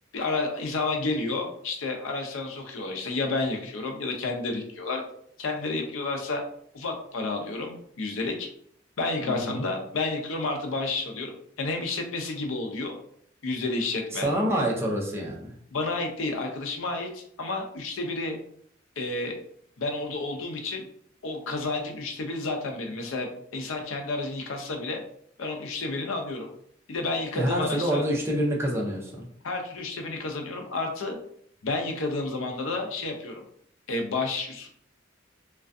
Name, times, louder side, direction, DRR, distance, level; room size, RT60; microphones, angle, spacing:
voice 1, 0.1-5.0 5.4-6.4 6.7-8.5 9.0-13.0 13.4-14.3 15.7-18.4 19.0-19.4 19.8-20.8 21.2-25.0 25.4-26.5 26.9-28.0 29.4-31.2 31.6-33.4 33.9-34.7, left 3 dB, 80° left, 3 dB, 0.5 m, -30 dB
voice 2, 9.2-9.7 14.1-15.5 27.3-29.3, equal, 15° right, -3 dB, 0.5 m, -27 dB
2.4 x 2.2 x 2.5 m, 0.65 s
head